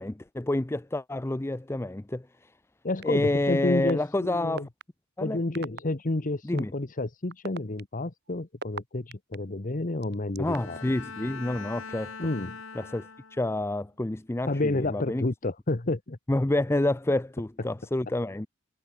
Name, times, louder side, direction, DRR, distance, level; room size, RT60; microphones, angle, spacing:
voice 1, 0.0-2.3 3.0-4.6 5.2-5.4 6.4-6.7 10.4-12.1 12.8-15.2 16.3-18.5, left 1 dB, 10° left, 0.5 m, -28 dB
voice 2, 2.8-4.7 5.2-10.8 12.2-12.6 14.5-16.2, left 2 dB, 40° left, 1.0 m, -30 dB
sound 1, 3.0-3.1 3.9-4.0 4.6-4.8 5.5-5.8 6.6-6.7 7.3-9.4 10.0-10.8, right 4 dB, 55° right, 2.0 m, -38 dB
Bowed string instrument, 10.5-13.7, left 5 dB, 75° left, 2.3 m, -42 dB
head